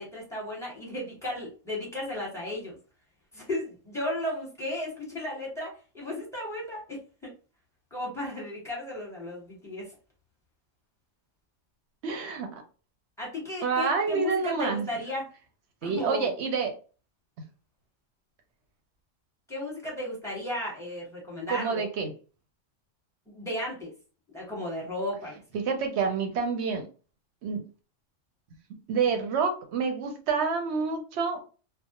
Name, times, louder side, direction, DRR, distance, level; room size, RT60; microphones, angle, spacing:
voice 1, 0.0-2.8 3.3-7.3 7.9-9.9 13.2-15.3 15.8-16.3 19.5-21.9 23.3-23.9 24.3-25.4, left 1 dB, 5° left, -4 dB, 0.9 m, -35 dB
voice 2, 12.0-12.5 13.6-14.9 15.8-16.7 21.5-22.1 25.5-26.9 27.4-27.6 28.9-31.4, right 5 dB, 65° right, 5 dB, 0.8 m, -28 dB
2.3 x 2.0 x 2.8 m, 0.36 s
omnidirectional pair, 1.3 m